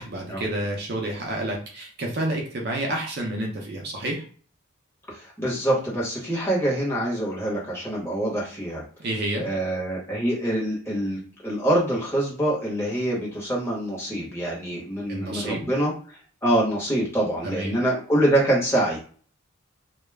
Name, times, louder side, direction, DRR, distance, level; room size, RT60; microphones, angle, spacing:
voice 1, 0.0-4.2 9.0-9.5 15.1-15.7 17.4-17.8, right 1 dB, 50° right, 0 dB, 0.5 m, -29 dB
voice 2, 5.1-8.8 9.4-19.0, right 1 dB, 10° left, -5 dB, 0.9 m, -25 dB
2.2 x 2.0 x 3.2 m, 0.43 s
head